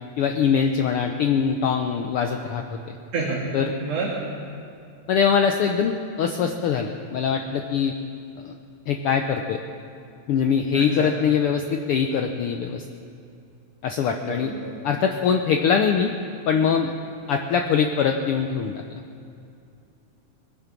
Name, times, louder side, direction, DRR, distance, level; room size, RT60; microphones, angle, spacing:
voice 1, 0.2-3.0 3.5-3.7 5.1-7.9 8.4-8.6 8.9-9.6 10.3-12.8 13.8-14.5 14.8-16.1 16.5-16.9 17.3-18.7, left 7 dB, 90° left, 4 dB, 1.2 m, -22 dB
voice 2, 3.8-4.1 10.7-11.1 14.3-14.7, right 4 dB, 65° right, -3 dB, 2.8 m, -28 dB
22.0 x 10.5 x 6.1 m, 2.6 s
omnidirectional pair, 3.4 m